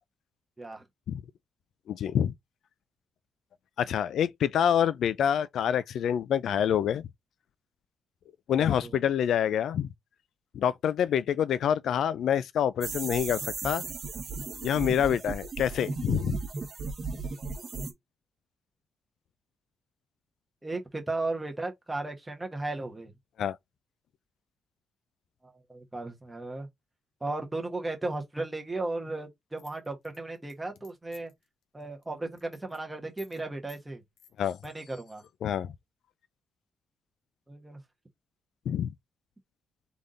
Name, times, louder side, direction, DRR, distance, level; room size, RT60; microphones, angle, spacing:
voice 1, 1.9-2.3 3.8-7.1 8.5-9.9 10.5-13.8 14.5-16.4 23.4-23.6 34.4-34.6 35.4-35.7 38.7-38.9, left 9 dB, 65° left, 0.3 m, -27 dB
voice 2, 8.6-9.0 20.6-23.1 25.4-26.7 27.2-31.3 31.7-34.0 34.6-35.2 37.5-37.8, right 2 dB, 10° right, 1.2 m, -35 dB
sound 1, 12.8-17.9, right 4 dB, 35° right, 1.5 m, -35 dB
sound 2, 29.6-31.4 31.8-32.0 32.3-32.8 33.2-33.4 33.7-33.8 34.2-34.7, left 9 dB, 85° left, 1.1 m, -55 dB
3.9 x 3.5 x 3.7 m
cardioid pair, 160°, 0 cm